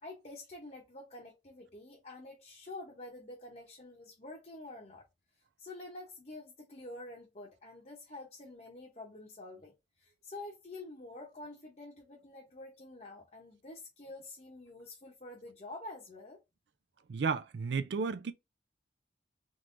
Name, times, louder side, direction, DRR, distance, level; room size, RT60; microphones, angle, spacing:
voice 1, 0.0-5.0 5.6-16.4, left 2 dB, 40° left, 0.8 m, -48 dB
voice 2, 17.1-18.3, right 5 dB, 75° right, 0.4 m, -33 dB
3.6 x 3.1 x 2.5 m
head